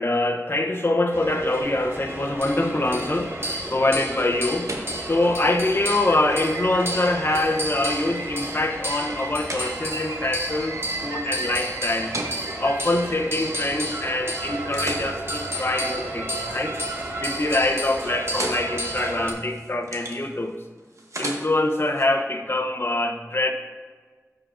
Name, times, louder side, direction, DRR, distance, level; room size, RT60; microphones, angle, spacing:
voice 1, 0.0-4.7 5.0-12.2 12.6-16.8 17.2-20.5 21.2-23.5, left 2 dB, 45° left, 3 dB, 0.9 m, -24 dB
sound 1, 1.1-19.3, right 1 dB, 45° right, 1.4 m, -31 dB
sound 2, 5.8-13.3, right 4 dB, 80° right, 0.4 m, -38 dB
sound 3, 14.4-16.7 17.1-17.5 17.8-22.0, right 1 dB, 65° right, 1.1 m, -39 dB
14.0 x 5.0 x 2.6 m, 1.5 s
wide cardioid pair, 45°, 6 cm